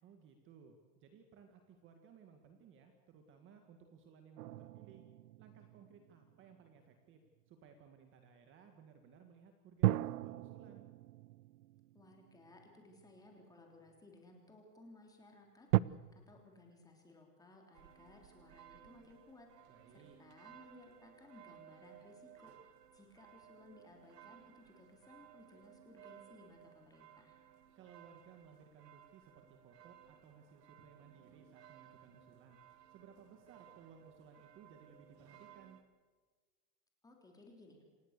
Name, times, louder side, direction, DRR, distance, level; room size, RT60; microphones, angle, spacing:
voice 1, 0.0-5.0 5.4-7.2 7.5-10.9 19.7-20.2 27.8-32.6 32.9-35.8, right 6 dB, 25° right, 5 dB, 1.9 m, -60 dB
sound 1, 4.4-6.9 9.8-13.2 13.9-14.0 15.7-15.8, right 17 dB, 65° right, 0.7 m, -37 dB
voice 2, 11.9-15.7 16.1-22.5 22.9-27.4 37.0-37.8, left 2 dB, 10° left, 1 dB, 3.5 m, -60 dB
sound 2, 17.7-35.8, right 11 dB, 85° right, 2.3 m, -60 dB
28.0 x 17.5 x 6.7 m, 1.4 s
supercardioid pair, 160°, 47 cm